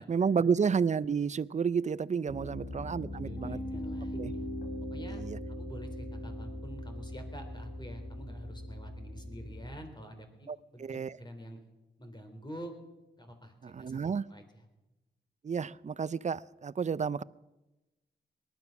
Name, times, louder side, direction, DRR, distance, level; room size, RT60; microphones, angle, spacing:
voice 1, 0.0-3.6 4.1-4.3 5.1-5.4 10.5-11.1 13.7-14.2 15.4-17.2, right 6 dB, 40° right, 0.5 m, -31 dB
Piano, 2.3-9.8, left 1 dB, 60° left, 3.8 m, -40 dB
voice 2, 3.1-4.5 4.9-5.2 5.5-11.6 12.0-12.7 13.2-14.0 14.3-14.7, equal, 25° left, 3.7 m, -47 dB
19.0 x 12.0 x 6.0 m
cardioid pair, 55°, 18 cm